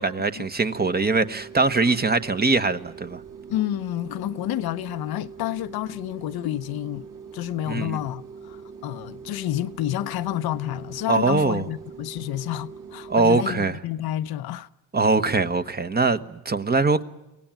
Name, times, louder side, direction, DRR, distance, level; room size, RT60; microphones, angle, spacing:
voice 1, 0.0-3.2 7.7-8.0 11.1-11.6 13.1-13.7 14.9-17.0, right 3 dB, 20° right, 1.2 m, -22 dB
sound 1, 0.7-13.3, right 6 dB, 45° right, 3.5 m, -43 dB
voice 2, 3.5-7.1 7.3-14.7, left 13 dB, 55° left, 0.8 m, -29 dB
24.0 x 17.5 x 9.0 m
supercardioid pair, 80°, 44 cm